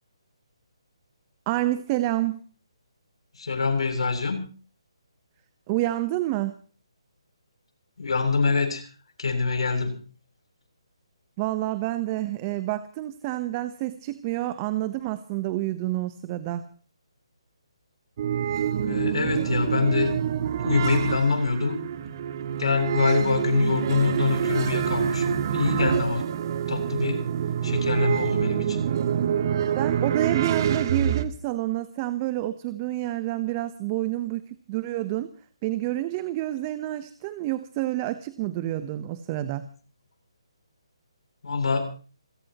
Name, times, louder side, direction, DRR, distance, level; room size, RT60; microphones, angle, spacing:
voice 1, 1.5-2.4 5.7-6.6 11.4-16.7 29.7-35.3 35.6-39.7, right 15 dB, 25° right, 13 dB, 1.0 m, -28 dB
voice 2, 3.4-4.4 8.0-8.9 9.2-10.0 18.8-20.2 20.6-21.8 22.6-26.3 26.7-27.2 27.6-28.8 41.4-41.9, left 4 dB, 70° left, 5 dB, 7.4 m, -25 dB
sound 1, 18.2-31.2, right 8 dB, 40° right, 1.7 m, -26 dB
28.0 x 16.5 x 3.0 m, 0.39 s
figure-of-eight pair, 150°, 3 cm